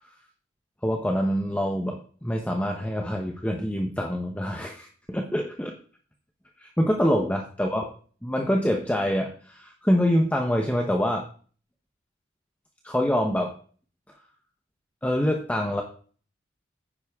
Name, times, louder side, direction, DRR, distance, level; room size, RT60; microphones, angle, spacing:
voice 1, 0.8-5.7 6.6-7.8 8.2-11.2 12.8-13.5 15.0-15.8, equal, 5° left, 2 dB, 1.0 m, -25 dB
10.0 x 9.7 x 3.6 m, 0.43 s
head